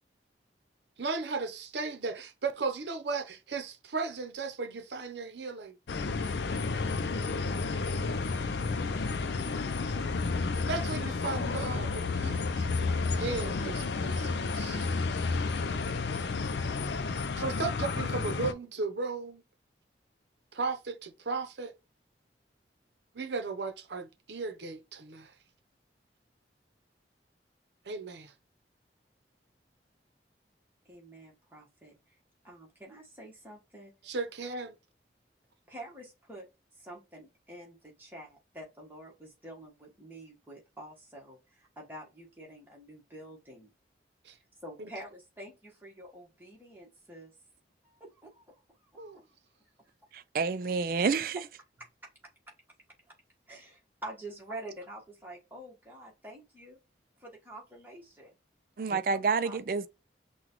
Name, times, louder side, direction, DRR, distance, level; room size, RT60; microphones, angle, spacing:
voice 1, 1.0-5.8 10.7-12.9 13.2-14.9 17.4-19.4 20.5-21.7 23.1-25.3 27.9-28.3 34.0-34.8 44.2-44.3 44.8-44.9 49.0-49.2 58.9-59.0, right 4 dB, 75° right, 0.7 m, -36 dB
sound 1, 5.9-18.5, left 4 dB, 75° left, 0.5 m, -31 dB
voice 2, 30.9-32.2 32.4-33.9 35.7-43.7 44.6-47.3 47.8-48.9 53.5-56.8 57.2-58.3 59.1-59.7, right 1 dB, 10° right, 1.4 m, -47 dB
voice 3, 50.1-51.4 58.8-59.9, right 5 dB, 50° right, 0.3 m, -29 dB
5.9 x 2.3 x 3.0 m
head